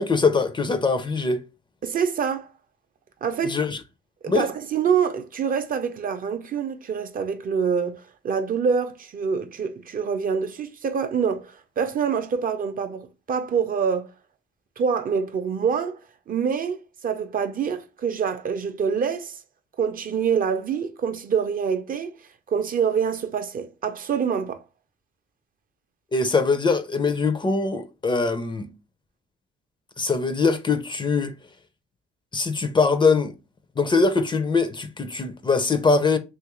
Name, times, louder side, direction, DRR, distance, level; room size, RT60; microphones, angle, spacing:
voice 1, 0.0-1.4 3.5-3.8 4.3-4.5 26.1-28.7 30.0-31.3 32.3-33.3 33.8-36.2, left 4 dB, 25° left, 0.4 m, -22 dB
voice 2, 1.8-2.5 3.2-3.6 4.2-14.1 14.8-16.0 16.3-19.4 19.8-22.1 22.5-24.6, right 6 dB, 45° right, 0.5 m, -26 dB
3.0 x 2.4 x 3.0 m
cardioid pair, 90°, 20 cm